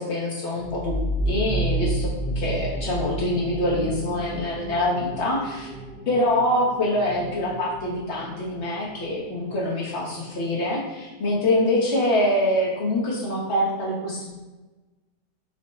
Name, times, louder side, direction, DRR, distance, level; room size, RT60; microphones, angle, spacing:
voice 1, 0.0-5.7 6.1-14.4, left 1 dB, 55° left, -4 dB, 0.8 m, -25 dB
sound 1, 0.6-9.9, right 1 dB, 70° right, 1.4 m, -31 dB
4.5 x 2.0 x 4.1 m, 1.2 s
omnidirectional pair, 1.9 m